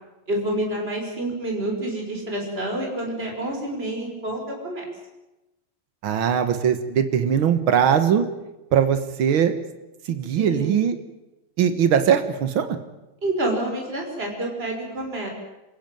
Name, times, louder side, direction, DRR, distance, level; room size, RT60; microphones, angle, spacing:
voice 1, 0.3-4.9 10.3-10.8 13.2-15.3, right 1 dB, 30° right, 1 dB, 5.8 m, -28 dB
voice 2, 6.0-8.3 8.7-9.5 10.1-11.0 11.6-12.8, right 8 dB, 80° right, 9 dB, 2.2 m, -20 dB
29.0 x 16.0 x 9.2 m, 1.0 s
omnidirectional pair, 2.2 m